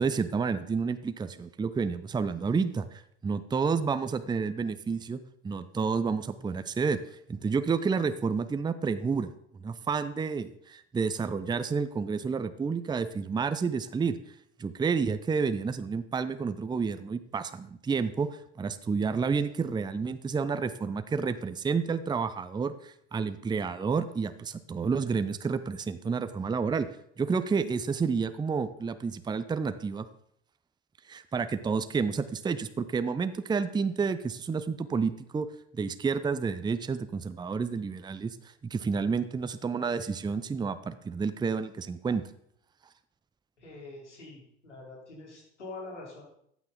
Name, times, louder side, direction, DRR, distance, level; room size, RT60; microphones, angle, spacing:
voice 1, 0.0-5.2 5.4-7.0 7.3-9.3 9.6-14.1 14.6-18.3 18.6-26.9 27.2-30.1 31.1-35.5 35.7-38.4 38.7-42.2, right 5 dB, 10° right, 11 dB, 0.7 m, -30 dB
voice 2, 43.6-46.3, left 3 dB, 80° left, -2 dB, 4.3 m, -45 dB
14.5 x 9.3 x 4.0 m, 0.71 s
figure-of-eight pair, 75°, 34 cm